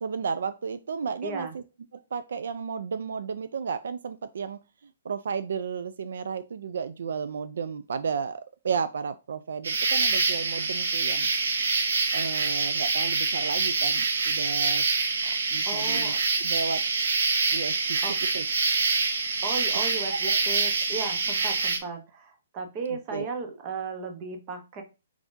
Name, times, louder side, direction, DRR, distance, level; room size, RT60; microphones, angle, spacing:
voice 1, 0.0-1.6 2.1-4.6 5.1-11.3 12.1-14.9 15.5-16.1 16.4-16.8 17.5-18.0 18.3-18.4 20.3-20.4 23.1-23.3, right 6 dB, 70° right, 14 dB, 0.3 m, -33 dB
voice 2, 1.2-1.5 15.2-15.3 15.7-16.2 18.0-18.2 19.4-24.8, right 4 dB, 25° right, 5 dB, 0.8 m, -35 dB
sound 1, 9.6-21.8, right 4 dB, 85° right, 0.9 m, -26 dB
4.7 x 3.5 x 2.6 m, 0.29 s
hypercardioid pair, 170°, 0 cm